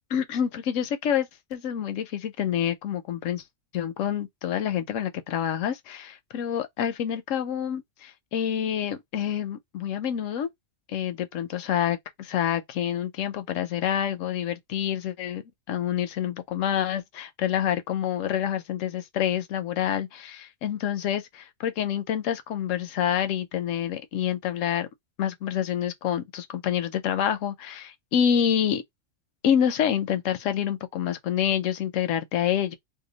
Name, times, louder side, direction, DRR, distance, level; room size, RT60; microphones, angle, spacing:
voice 1, 0.1-3.4 3.7-10.5 10.9-24.9 25.2-28.8 29.4-32.7, left 9 dB, 80° left, 1.0 m, -27 dB
2.8 x 2.2 x 3.8 m
omnidirectional pair, 1.3 m